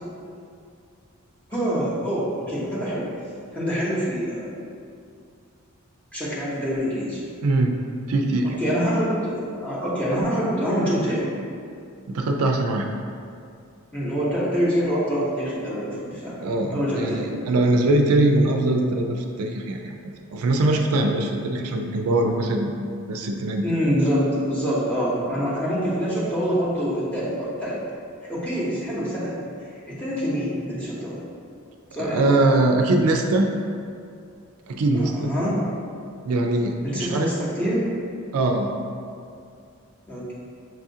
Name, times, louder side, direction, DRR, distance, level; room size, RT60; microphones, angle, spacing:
voice 1, 1.5-3.1 3.5-4.6 6.1-7.2 8.4-11.3 13.9-16.4 16.7-17.3 23.6-27.8 28.3-29.4 29.9-31.2 31.9-32.4 34.9-35.6 36.8-37.9 40.1-40.3, equal, 5° left, -8 dB, 0.8 m, -25 dB
voice 2, 7.4-8.6 12.1-12.9 16.4-19.9 20.3-22.8 23.1-23.7 32.0-33.5 34.7-35.3 36.2-37.3 38.3-38.8, right 2 dB, 80° right, 3 dB, 0.4 m, -22 dB
6.1 x 2.4 x 2.7 m, 2.4 s
head